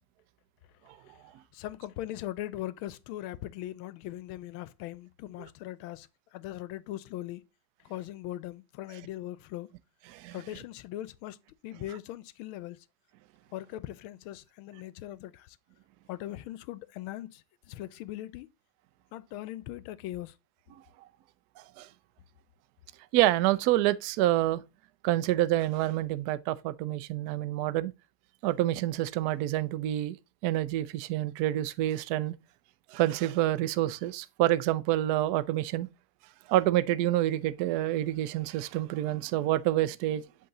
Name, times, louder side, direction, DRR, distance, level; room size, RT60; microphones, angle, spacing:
voice 1, 1.5-7.4 7.8-9.7 10.3-12.9 13.5-15.6 16.1-18.5 19.1-20.4, left 14 dB, 85° left, 1.4 m, -40 dB
voice 2, 21.6-21.9 23.1-24.6 25.0-27.9 28.4-30.2 30.4-32.3 32.9-35.9 36.5-40.2, right 14 dB, 80° right, 0.8 m, -27 dB
7.8 x 3.8 x 4.0 m
omnidirectional pair, 2.3 m